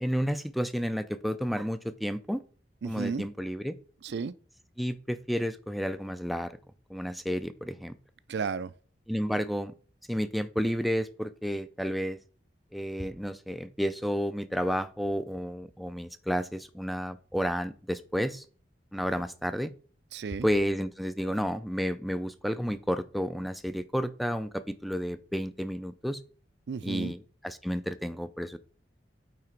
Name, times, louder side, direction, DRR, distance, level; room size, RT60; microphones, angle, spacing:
voice 1, 0.0-2.4 2.8-3.7 4.8-6.5 6.9-7.9 9.1-9.7 10.1-12.2 12.7-18.4 18.9-19.7 20.4-26.2 26.8-28.6, equal, ahead, 0.3 m, -31 dB
voice 2, 2.8-3.3 4.0-4.3 8.3-8.7 20.1-20.5 26.7-27.1, right 5 dB, 65° right, 0.4 m, -33 dB
8.7 x 3.3 x 4.4 m
head